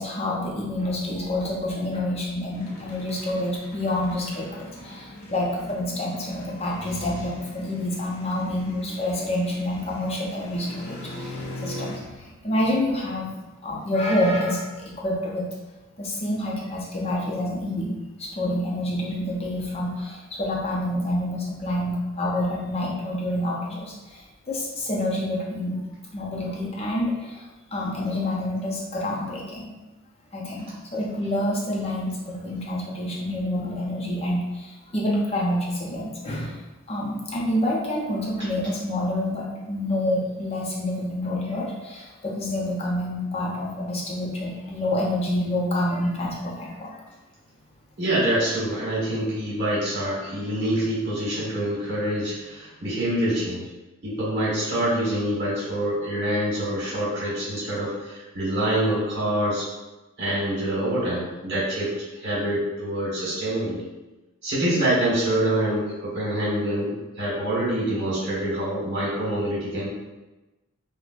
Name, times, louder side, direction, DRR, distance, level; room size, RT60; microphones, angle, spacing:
voice 1, 0.0-15.5 16.0-25.8 26.1-27.5 27.7-29.7 30.3-36.6 36.9-47.0, left 1 dB, 30° left, -3 dB, 0.6 m, -28 dB
sound 1, 2.4-12.0, left 1 dB, 80° left, 0.6 m, -40 dB
voice 2, 48.0-53.6 54.0-59.7 60.2-63.8 64.4-69.9, right 1 dB, 55° right, -8 dB, 1.4 m, -26 dB
4.8 x 2.1 x 2.4 m, 1.1 s
head